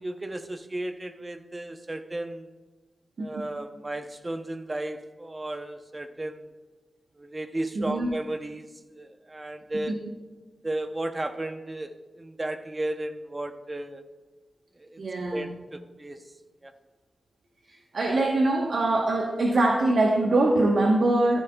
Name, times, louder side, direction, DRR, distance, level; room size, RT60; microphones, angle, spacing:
voice 1, 0.0-2.5 3.2-6.5 7.2-10.0 10.6-14.0 14.8-15.0 15.3-16.2 16.6-16.7, right 1 dB, 25° right, 8 dB, 0.8 m, -34 dB
voice 2, 7.7-8.1 9.7-10.0 15.0-15.5 17.7-21.4, right 2 dB, 65° right, 0 dB, 1.1 m, -23 dB
14.5 x 11.0 x 2.3 m, 1.3 s
wide cardioid pair, 85°, 0 cm